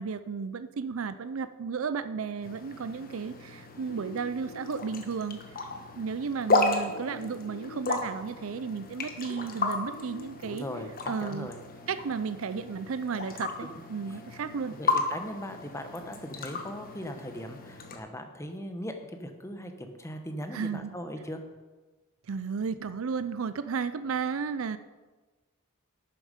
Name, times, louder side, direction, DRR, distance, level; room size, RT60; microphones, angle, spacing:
voice 1, 0.0-5.4 6.0-10.6 11.1-11.5 11.9-14.7 20.5-21.0 22.3-24.8, right 5 dB, 75° right, 13 dB, 0.5 m, -33 dB
sound 1, 2.4-18.0, left 3 dB, 45° left, 1.3 m, -34 dB
sound 2, 3.9-4.9 6.9-7.9 9.9-10.9, left 3 dB, 90° left, 0.9 m, -45 dB
voice 2, 10.4-10.9 11.2-11.6 14.7-21.4, equal, 15° left, 6 dB, 1.0 m, -39 dB
11.5 x 9.0 x 5.1 m, 1.3 s
head